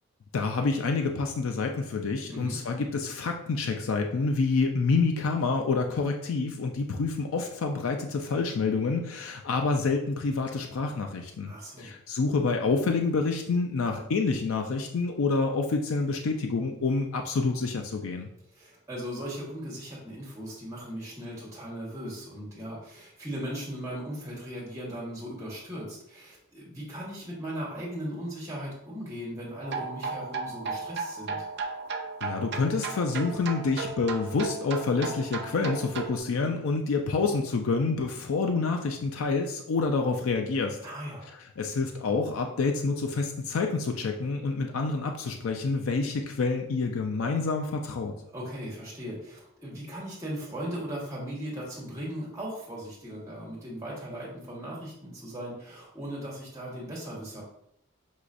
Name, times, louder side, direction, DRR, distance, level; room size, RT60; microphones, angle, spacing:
voice 1, 0.3-11.5 11.8-18.3 32.2-40.8 41.6-48.1, left 4 dB, 70° left, 3 dB, 0.4 m, -28 dB
voice 2, 11.4-11.9 18.5-31.4 40.8-41.3 48.3-57.4, equal, 15° right, -6 dB, 1.5 m, -38 dB
sound 1, 29.6-36.2, right 4 dB, 50° right, 0.5 m, -35 dB
6.2 x 3.0 x 2.5 m, 0.74 s
head